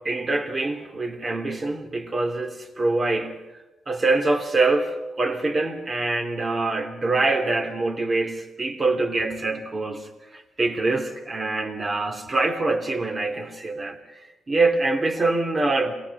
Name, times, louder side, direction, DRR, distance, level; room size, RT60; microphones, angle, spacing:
voice 1, 0.0-3.4 3.9-10.1 10.3-14.0 14.5-15.9, right 3 dB, 30° right, 3.1 m, -24 dB
27.5 x 20.0 x 5.5 m
cardioid pair, 135°, 0 cm